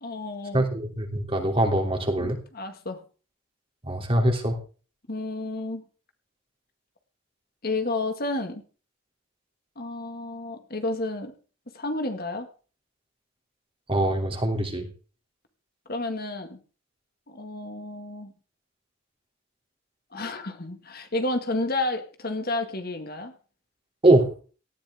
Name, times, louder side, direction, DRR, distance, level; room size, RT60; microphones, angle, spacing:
voice 1, 0.0-0.7 2.2-3.0 5.1-5.8 7.6-8.6 9.8-11.3 11.7-12.5 15.9-16.6 17.3-18.3 20.1-23.3, left 2 dB, 45° left, 6 dB, 2.0 m, -31 dB
voice 2, 0.5-2.4 3.9-4.6 13.9-14.9 24.0-24.3, right 1 dB, 25° right, 3 dB, 3.0 m, -23 dB
18.0 x 14.0 x 3.7 m, 0.38 s
head